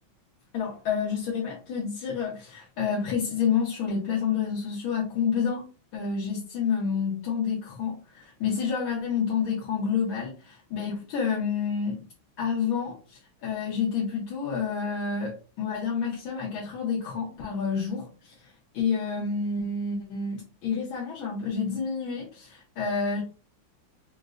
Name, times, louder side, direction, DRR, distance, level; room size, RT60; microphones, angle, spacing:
voice 1, 0.5-12.0 12.4-23.2, left 6 dB, 80° left, -4 dB, 1.7 m, -29 dB
5.0 x 2.1 x 2.4 m, 0.35 s
omnidirectional pair, 2.2 m